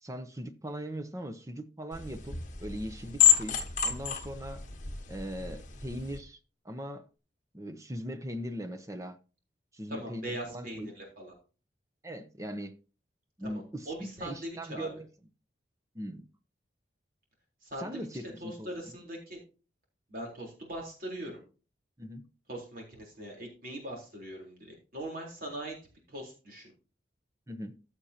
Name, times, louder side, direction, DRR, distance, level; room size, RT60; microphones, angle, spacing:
voice 1, 0.0-4.6 5.1-6.4 6.6-7.1 7.5-9.2 9.7-10.9 12.0-12.8 13.4-15.1 15.9-16.3 17.8-18.7 22.0-22.2 27.5-27.8, equal, 15° right, 0.8 m, -40 dB
sound 1, 1.9-6.2, left 9 dB, 40° left, 1.2 m, -29 dB
voice 2, 9.9-11.3 13.4-14.9 17.6-18.1 18.4-19.4 20.1-21.4 22.5-25.8 26.1-26.7, right 1 dB, 50° right, 3.9 m, -41 dB
15.0 x 6.7 x 2.9 m
head